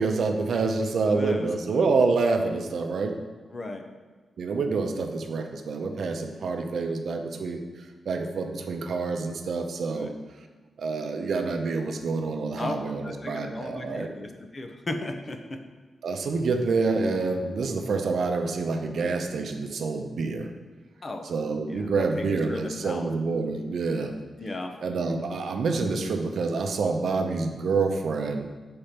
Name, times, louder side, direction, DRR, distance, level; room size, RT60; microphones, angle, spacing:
voice 1, 0.0-3.1 4.4-7.6 8.1-10.1 10.8-14.1 16.0-20.5 21.2-24.1 24.8-28.5, right 4 dB, 70° right, 4 dB, 0.7 m, -27 dB
voice 2, 1.1-1.8 3.5-3.8 9.9-10.1 12.6-12.8 13.0-15.6 21.0-21.3 21.7-23.1 24.4-24.8, left 2 dB, 30° left, 5 dB, 0.6 m, -36 dB
5.8 x 4.3 x 5.1 m, 1.4 s
wide cardioid pair, 130°, 0 cm